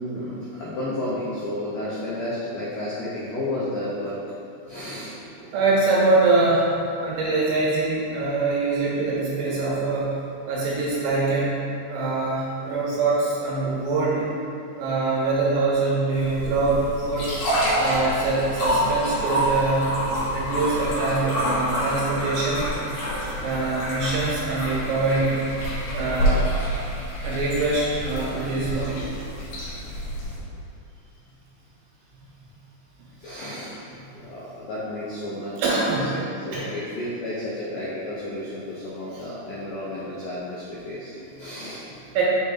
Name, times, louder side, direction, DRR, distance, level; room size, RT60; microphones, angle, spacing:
voice 1, 0.0-4.2 4.7-5.1 20.6-20.9 26.0-26.6 28.4-28.6 30.9-31.1 33.1-42.0, left 1 dB, 80° left, -8 dB, 1.8 m, -33 dB
voice 2, 5.5-6.7 7.0-10.1 10.5-11.5 11.9-14.3 14.8-17.3 17.8-19.9 20.3-22.7 23.4-25.4 25.9-26.5 27.2-29.1 35.6-36.1 36.5-36.6 42.1-42.2, right 3 dB, 80° right, -6 dB, 3.4 m, -23 dB
sound 1, 16.1-30.4, equal, 60° left, 2.0 m, -27 dB
6.6 x 3.9 x 3.9 m, 2.6 s
omnidirectional pair, 5.0 m